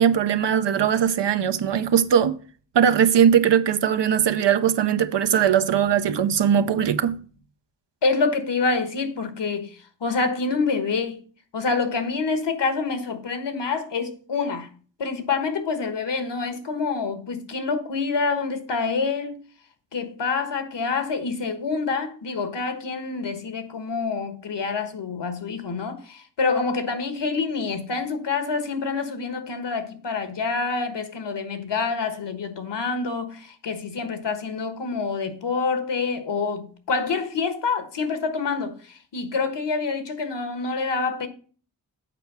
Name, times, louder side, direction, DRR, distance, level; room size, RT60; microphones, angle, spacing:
voice 1, 0.0-2.4 2.7-7.2, right 8 dB, 80° right, 0.7 m, -20 dB
voice 2, 8.0-11.2 11.5-14.7 15.0-19.4 19.9-41.3, left 4 dB, 75° left, 1.4 m, -27 dB
7.7 x 4.6 x 6.6 m
cardioid pair, 65°, 42 cm